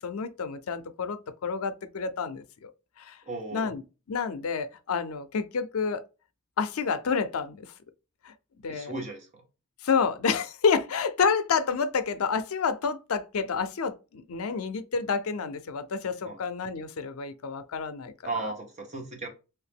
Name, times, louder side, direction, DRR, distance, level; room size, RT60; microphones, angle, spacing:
voice 1, 0.0-2.4 3.0-3.2 3.5-3.8 4.1-6.0 6.6-7.7 8.3-8.4 8.6-8.9 9.8-18.1, left 5 dB, 90° left, 0.5 m, -29 dB
voice 2, 3.2-3.7 8.7-9.4 14.5-14.6 16.2-16.4 18.2-19.3, right 2 dB, 35° right, 1.1 m, -36 dB
3.0 x 2.8 x 3.4 m
head